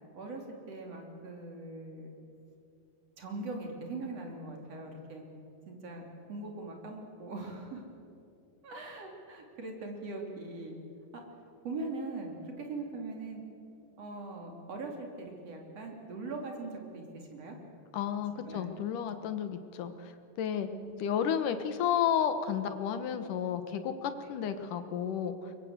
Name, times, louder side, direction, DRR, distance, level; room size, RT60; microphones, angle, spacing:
voice 1, 0.1-2.1 3.2-5.2 5.7-6.0 6.3-7.8 8.6-10.8 11.6-13.4 14.0-17.6 18.3-18.7 20.7-20.9 24.2-24.3, right 3 dB, 45° right, 2 dB, 3.8 m, -41 dB
voice 2, 17.9-20.7 21.0-25.5, left 8 dB, 65° left, 9 dB, 2.5 m, -32 dB
23.0 x 23.0 x 8.1 m, 2.6 s
omnidirectional pair, 4.4 m